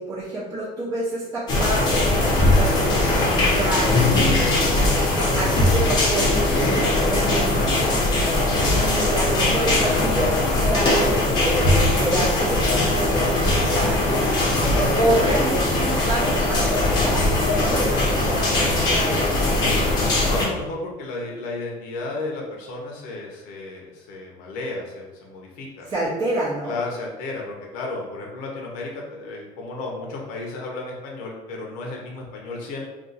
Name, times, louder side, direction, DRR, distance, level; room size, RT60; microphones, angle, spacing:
voice 1, 0.0-4.7 5.4-7.8 8.7-14.0 14.8-19.3 25.8-26.8, right 1 dB, 25° right, -8 dB, 0.6 m, -28 dB
sound 1, 1.5-20.5, left 2 dB, 25° left, 0.7 m, -20 dB
voice 2, 20.2-25.9 26.6-32.8, left 2 dB, 65° left, -2 dB, 0.7 m, -33 dB
2.5 x 2.4 x 3.9 m, 1.1 s
cardioid pair, 175°, 16 cm